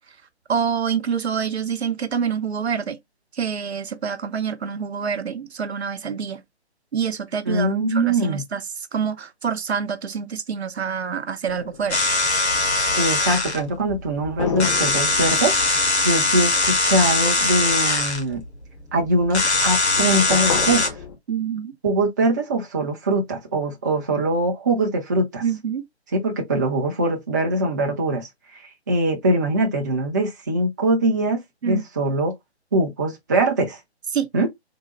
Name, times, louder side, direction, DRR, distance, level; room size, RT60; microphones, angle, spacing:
voice 1, 0.5-3.0 3.3-6.4 6.9-12.0 21.3-21.7 25.4-25.8 31.6-31.8 34.1-34.3, right 7 dB, 70° right, 0.7 m, -26 dB
voice 2, 7.5-8.4 12.9-15.5 16.0-18.4 18.9-20.9 21.8-25.4 26.1-32.3 32.7-33.8 34.3-34.5, right 2 dB, 15° right, 0.4 m, -22 dB
sound 1, 11.5-13.2 14.4-18.6 19.6-21.2, left 6 dB, 30° left, 0.6 m, -33 dB
sound 2, 11.9-20.9, left 2 dB, 80° left, 1.4 m, -21 dB
3.7 x 2.1 x 3.9 m
figure-of-eight pair, 140°, 33 cm